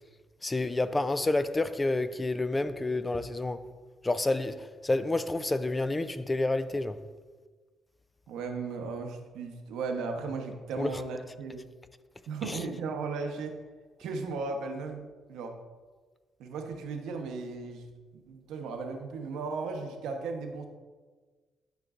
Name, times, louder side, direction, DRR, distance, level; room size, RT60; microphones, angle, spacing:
voice 1, 0.4-3.6 4.0-7.0 10.8-11.0 12.4-12.6, left 2 dB, 20° left, 0.3 m, -29 dB
voice 2, 8.3-11.7 12.3-13.6 14.0-15.0 15.3-15.6 16.4-18.0 18.3-20.6, right 4 dB, 90° right, 0.8 m, -36 dB
10.5 x 5.1 x 2.4 m
cardioid pair, 90°, 0 cm